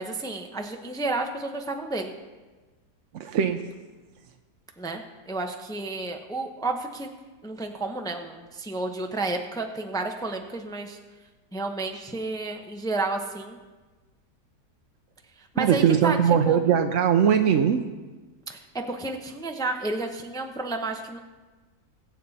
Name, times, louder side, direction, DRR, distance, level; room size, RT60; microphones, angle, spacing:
voice 1, 0.0-2.1 4.8-7.1 7.4-11.0 11.5-13.6 15.4-16.2 16.5-16.6 18.5-21.2, right 2 dB, 5° left, 4 dB, 0.4 m, -31 dB
voice 2, 3.1-3.6 15.6-17.8, right 8 dB, 60° right, 6 dB, 0.8 m, -20 dB
21.5 x 7.5 x 4.1 m, 1.3 s
omnidirectional pair, 1.8 m